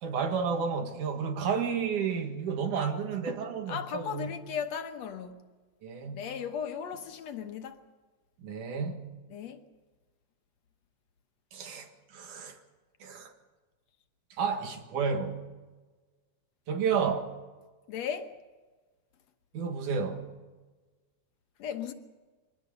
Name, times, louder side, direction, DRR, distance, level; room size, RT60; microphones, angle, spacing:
voice 1, 0.0-4.3 5.8-6.2 8.4-9.0 11.5-12.6 13.0-13.3 14.4-15.4 16.7-17.3 19.5-20.2, right 6 dB, 85° right, 3.3 m, -31 dB
voice 2, 3.7-5.4 6.1-7.8 9.3-9.6 17.9-18.4 21.6-21.9, left 7 dB, 65° left, 2.2 m, -36 dB
23.5 x 18.5 x 6.7 m
omnidirectional pair, 3.5 m